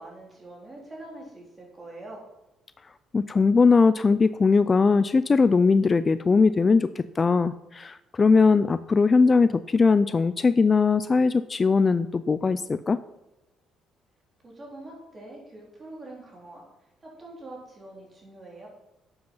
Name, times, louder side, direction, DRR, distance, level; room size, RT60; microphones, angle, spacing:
voice 1, 0.0-2.2 14.4-16.6 17.0-18.7, right 2 dB, 25° right, -2 dB, 4.0 m, -44 dB
voice 2, 3.1-13.0, left 4 dB, 25° left, 13 dB, 0.3 m, -20 dB
11.5 x 7.9 x 5.6 m, 0.98 s
cardioid pair, 135°, 0 cm